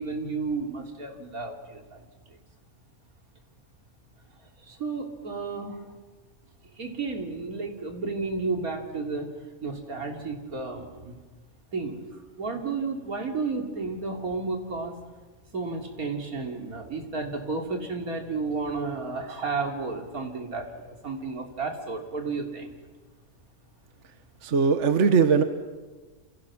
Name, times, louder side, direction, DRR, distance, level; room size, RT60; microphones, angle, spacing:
voice 1, 0.0-2.4 4.6-5.9 6.7-9.3 9.6-11.2 11.7-14.9 15.5-22.8, right 4 dB, 90° right, 3 dB, 3.5 m, -32 dB
voice 2, 24.4-25.4, right 5 dB, 60° right, 8 dB, 1.5 m, -20 dB
28.0 x 28.0 x 6.1 m, 1.3 s
omnidirectional pair, 1.5 m